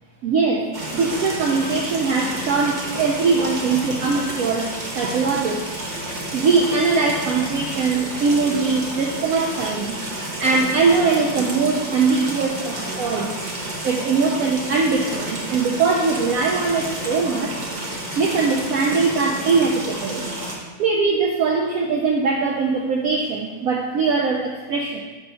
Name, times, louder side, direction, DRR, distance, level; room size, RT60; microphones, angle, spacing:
voice 1, 0.2-5.7 6.3-10.0 10.4-13.3 13.8-17.6 18.2-20.3 20.8-25.0, right 4 dB, 85° right, 0 dB, 0.7 m, -21 dB
sound 1, 0.7-20.6, right 1 dB, 55° right, 0.5 m, -30 dB
5.1 x 3.5 x 5.6 m, 1.3 s
omnidirectional pair, 2.1 m